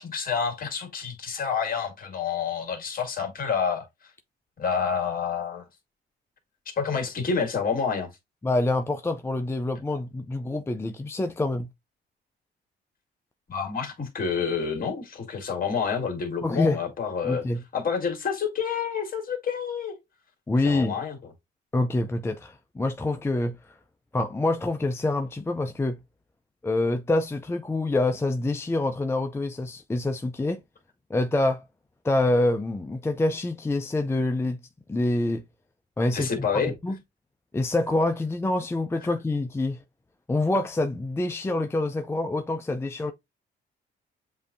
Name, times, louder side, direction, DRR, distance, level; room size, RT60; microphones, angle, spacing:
voice 1, 0.0-3.9 4.6-5.7 6.8-8.1 13.5-17.4 17.7-20.0 20.6-21.2 36.1-36.7, left 6 dB, 45° left, 2.0 m, -28 dB
voice 2, 8.4-11.7 16.4-16.8 17.2-17.6 20.5-20.9 21.7-23.6 24.1-26.0 26.6-30.6 31.1-31.6 32.0-34.6 34.9-35.4 36.0-36.3 36.7-37.0 37.5-39.8 40.3-43.1, left 2 dB, 15° left, 0.4 m, -26 dB
7.4 x 2.7 x 2.5 m
cardioid pair, 90°, 20 cm